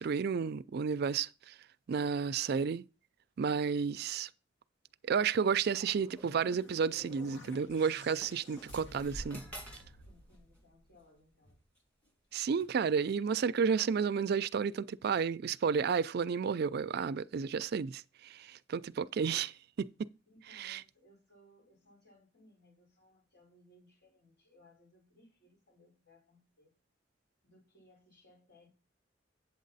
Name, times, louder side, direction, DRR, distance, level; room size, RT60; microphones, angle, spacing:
voice 1, 0.0-1.5 1.9-2.8 3.4-4.3 5.0-9.4 12.3-19.9 20.5-20.8, right 6 dB, 55° right, 0.4 m, -32 dB
sound 1, 5.8-11.2, left 1 dB, 75° left, 1.1 m, -53 dB
sound 2, 5.8-6.8 7.7-7.8 8.2-10.0 10.2-10.6 11.4-11.8 12.6-12.7, equal, 10° left, 2.1 m, -49 dB
voice 2, 10.0-11.6 12.0-12.1 20.3-26.8 27.4-28.7, left 1 dB, 60° left, 4.6 m, -64 dB
8.5 x 7.4 x 4.1 m
head